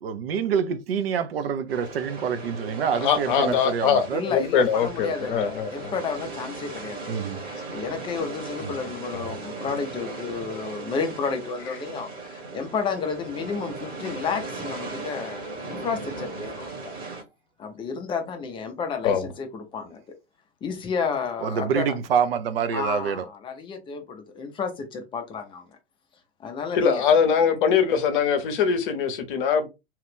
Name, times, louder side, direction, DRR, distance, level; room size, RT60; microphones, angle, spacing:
voice 1, 0.0-4.2 7.1-7.4 8.6-8.7 21.4-23.2, right 7 dB, 60° right, 0.6 m, -26 dB
sound 1, 1.7-17.2, right 3 dB, 25° right, 1.1 m, -37 dB
voice 2, 3.0-5.9 9.1-9.3 19.0-19.3 26.7-29.7, left 7 dB, 50° left, 0.8 m, -22 dB
voice 3, 4.1-7.1 7.4-16.7 17.6-20.0 20.6-21.9 22.7-25.7 26.4-27.0, left 5 dB, 15° left, 0.5 m, -31 dB
2.9 x 2.4 x 3.5 m
figure-of-eight pair, 100°, 34 cm